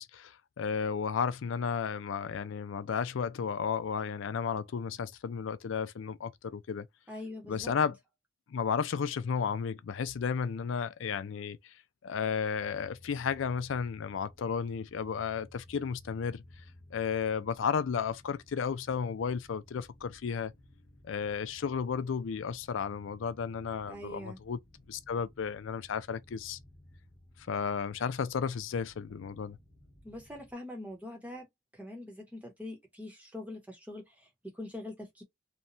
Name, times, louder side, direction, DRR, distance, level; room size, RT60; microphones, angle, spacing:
voice 1, 0.0-6.9 7.5-8.0 8.5-11.7 12.0-16.4 16.9-20.5 21.0-24.6 24.9-26.6 27.5-29.6, left 6 dB, 80° left, 0.4 m, -33 dB
voice 2, 7.1-7.7 23.9-24.4 30.0-31.5 31.7-35.2, left 1 dB, 5° right, 0.9 m, -43 dB
sound 1, 12.6-30.5, left 1 dB, 20° left, 1.1 m, -57 dB
3.0 x 2.2 x 2.5 m
head